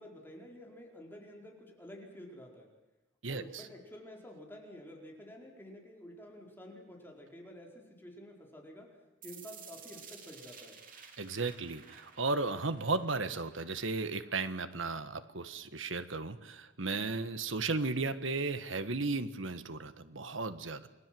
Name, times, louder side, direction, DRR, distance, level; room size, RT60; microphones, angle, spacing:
voice 1, 0.0-2.7 3.3-8.9 9.2-10.8, left 1 dB, 10° left, 0 dB, 4.7 m, -50 dB
voice 2, 3.2-3.6 11.2-20.9, right 3 dB, 85° right, 11 dB, 1.6 m, -35 dB
sound 1, 9.2-15.2, right 6 dB, 45° right, 3.1 m, -54 dB
29.0 x 20.5 x 7.8 m, 1.0 s
head